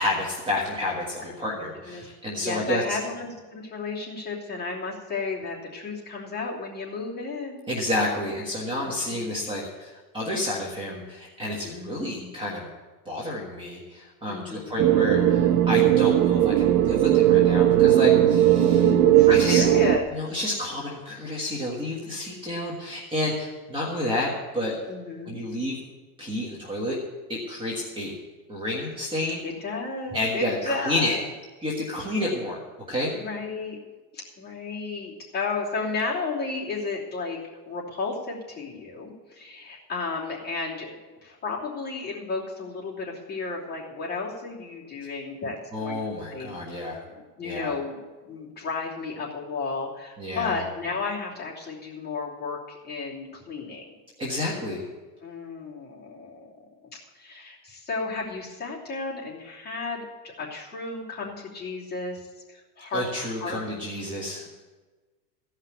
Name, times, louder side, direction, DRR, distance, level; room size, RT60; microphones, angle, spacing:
voice 1, 0.0-3.0 7.7-12.7 13.0-18.8 19.3-19.6 20.1-24.8 25.2-25.8 26.2-27.0 27.3-28.1 28.5-29.4 30.1-31.2 31.6-32.6 32.9-33.1 45.7-47.0 47.4-47.7 50.2-50.6 54.2-54.8 62.9-64.6, left 1 dB, 10° right, -4 dB, 1.5 m, -30 dB
voice 2, 2.4-7.7 8.8-9.4 11.6-12.3 14.3-14.9 18.7-20.1 24.9-25.4 29.4-31.2 33.1-33.8 34.1-37.4 37.7-41.0 41.2-46.0 46.3-46.5 47.1-48.0 48.2-53.9 55.2-56.5 56.9-63.7, left 4 dB, 20° left, -5 dB, 2.9 m, -33 dB
sound 1, 14.8-20.0, right 12 dB, 65° right, 0.9 m, -18 dB
15.5 x 5.8 x 8.3 m, 1.3 s
supercardioid pair, 155°, 49 cm